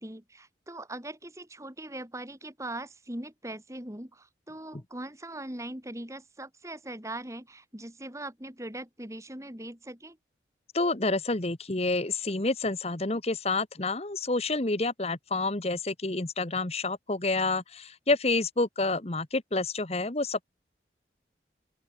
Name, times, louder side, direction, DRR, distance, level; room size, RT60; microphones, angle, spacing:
voice 1, 0.0-10.2, right 1 dB, 15° right, 3.5 m, -40 dB
voice 2, 10.7-20.4, left 3 dB, 35° left, 1.3 m, -28 dB
open air
head